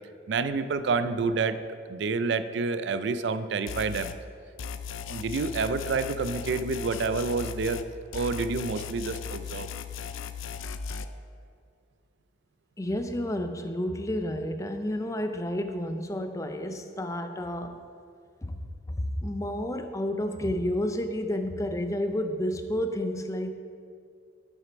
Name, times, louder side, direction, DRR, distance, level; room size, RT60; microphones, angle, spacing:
voice 1, 0.3-1.6 1.9-4.1 5.1-7.8 8.1-9.7, right 4 dB, 60° right, 12 dB, 0.4 m, -28 dB
sound 1, 3.7-4.2 4.6-7.9 8.1-11.1, left 7 dB, 85° left, 0.4 m, -37 dB
voice 2, 12.8-17.8 18.4-18.6 18.9-23.5, left 1 dB, 15° left, 8 dB, 0.4 m, -30 dB
7.4 x 6.4 x 5.1 m, 2.3 s
head